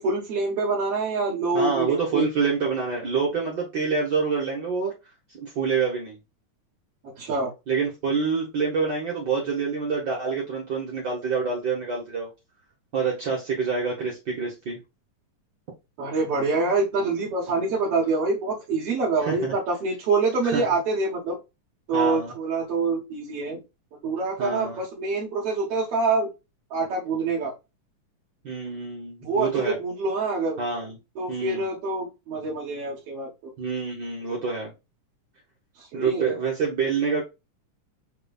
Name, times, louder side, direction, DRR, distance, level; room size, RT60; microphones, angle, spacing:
voice 1, 0.0-2.3 7.2-7.5 16.0-21.4 21.9-23.6 24.0-26.3 26.7-27.5 29.2-30.6 31.2-33.5 35.8-36.3, right 3 dB, 55° right, -6 dB, 1.9 m, -26 dB
voice 2, 1.5-4.9 5.4-6.2 7.7-12.3 12.9-14.8 19.2-19.5 20.4-20.7 21.9-22.3 24.4-24.8 28.4-29.8 30.6-31.0 31.3-31.7 33.6-34.7 35.9-37.2, right 5 dB, 75° right, -2 dB, 1.0 m, -26 dB
6.7 x 3.0 x 2.3 m, 0.25 s
omnidirectional pair, 3.8 m